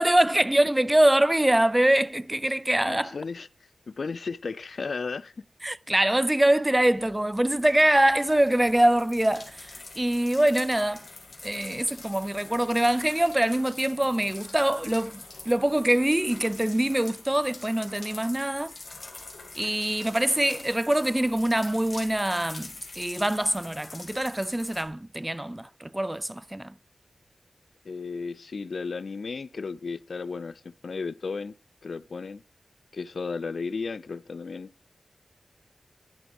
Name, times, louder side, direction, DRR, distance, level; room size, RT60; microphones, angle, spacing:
voice 1, 0.0-3.2 5.6-11.0 11.4-18.7 19.6-26.7, right 1 dB, 15° right, 0.4 m, -24 dB
voice 2, 2.8-3.5 3.9-5.3 27.8-31.6 31.8-32.4 32.9-34.7, left 4 dB, 75° left, 0.3 m, -34 dB
sound 1, 6.8-24.8, left 3 dB, 55° left, 2.4 m, -45 dB
11.5 x 7.0 x 3.5 m
wide cardioid pair, 60°, 0 cm